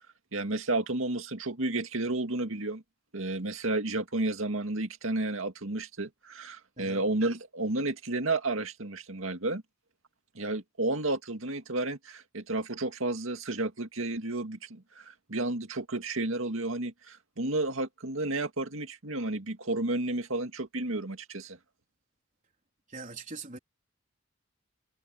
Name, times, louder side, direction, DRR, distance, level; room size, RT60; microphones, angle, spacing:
voice 1, 0.3-2.8 3.1-9.6 10.4-21.6, right 2 dB, 80° right, 2.2 m, -32 dB
voice 2, 22.9-23.6, right 4 dB, 40° right, 3.8 m, -42 dB
head